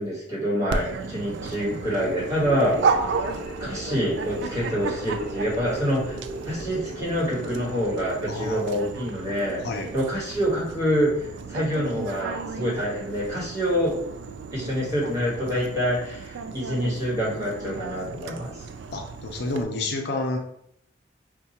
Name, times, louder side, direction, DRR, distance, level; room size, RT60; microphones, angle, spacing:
voice 1, 0.0-3.0 3.6-6.2 6.4-9.6 9.9-14.0 14.5-18.5, equal, 20° right, -6 dB, 1.4 m, -26 dB
Dog, 0.7-19.6, right 5 dB, 70° right, 0.3 m, -33 dB
sound 1, 2.4-8.1, equal, 30° left, 1.4 m, -39 dB
voice 2, 8.3-8.8 9.6-9.9 18.9-20.4, left 2 dB, 65° left, 2 dB, 0.5 m, -29 dB
4.5 x 2.2 x 2.8 m, 0.72 s
head